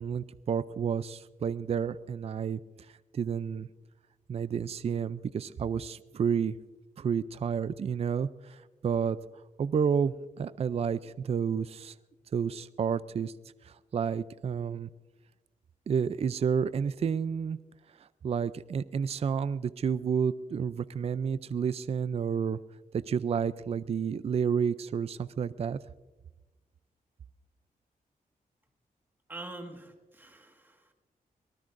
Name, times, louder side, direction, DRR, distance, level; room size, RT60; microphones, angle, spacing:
voice 1, 0.0-2.6 3.1-3.7 4.3-6.6 7.0-9.2 9.6-11.9 12.3-13.3 13.6-14.9 15.9-17.6 18.0-22.6 22.9-25.8, right 7 dB, 40° right, 15 dB, 0.4 m, -30 dB
voice 2, 29.3-30.9, right 2 dB, 15° right, 3 dB, 1.7 m, -45 dB
23.5 x 19.0 x 2.6 m, 1.2 s
wide cardioid pair, 120°, 15 cm